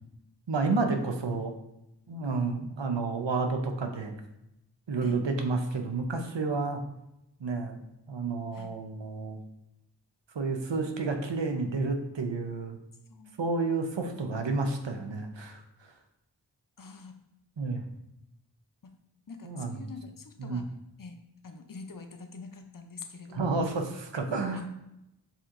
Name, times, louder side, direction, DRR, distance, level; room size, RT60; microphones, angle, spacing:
voice 1, 0.5-1.5 2.1-4.1 4.9-6.8 7.4-7.8 8.1-9.4 10.3-12.8 13.4-15.6 17.6-17.8 19.4-19.8 20.4-20.6 23.3-23.9 24.1-24.6, right 3 dB, 85° right, 4 dB, 0.7 m, -30 dB
voice 2, 16.8-17.2 18.8-18.9 19.3-20.6 21.0-21.2 21.4-23.7 24.2-24.7, left 4 dB, 50° left, 6 dB, 0.6 m, -45 dB
6.7 x 2.9 x 2.5 m, 0.86 s
wide cardioid pair, 40°, 43 cm